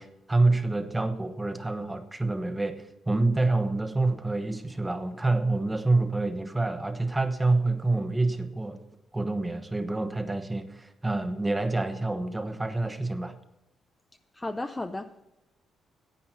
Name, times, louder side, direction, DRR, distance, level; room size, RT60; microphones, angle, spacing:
voice 1, 0.0-8.8 9.1-13.4, right 2 dB, 15° right, 1.1 m, -27 dB
voice 2, 14.3-15.2, left 2 dB, 15° left, 0.6 m, -34 dB
10.5 x 8.6 x 5.7 m
cardioid pair, 90°, 0 cm